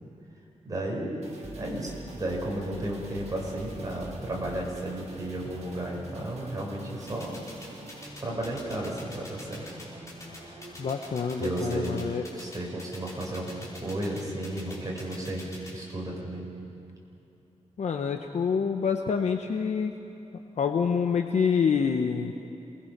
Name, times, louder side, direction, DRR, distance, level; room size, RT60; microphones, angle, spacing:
voice 1, 0.6-1.2 1.5-7.4 8.2-9.9 11.4-11.9 12.3-16.5, right 1 dB, 30° right, -3 dB, 5.0 m, -33 dB
sound 1, 1.2-9.8 10.1-10.2, right 2 dB, 70° right, 4.5 m, -48 dB
sound 2, 3.3-14.9, right 1 dB, 50° right, 4.7 m, -48 dB
sound 3, 7.1-15.7, left 2 dB, 25° left, 5.2 m, -44 dB
voice 2, 10.8-12.2 17.8-19.9 20.6-22.3, left 6 dB, 70° left, 5 dB, 0.9 m, -27 dB
27.5 x 20.5 x 6.0 m, 2.8 s
wide cardioid pair, 150°, 12 cm